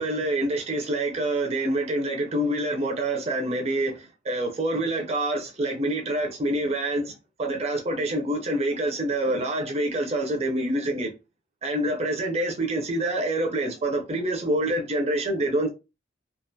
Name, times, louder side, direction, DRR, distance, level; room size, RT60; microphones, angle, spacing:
voice 1, 0.0-7.1 7.4-11.1 11.6-15.7, right 1 dB, 30° right, 0.4 m, -26 dB
2.4 x 2.2 x 2.6 m
head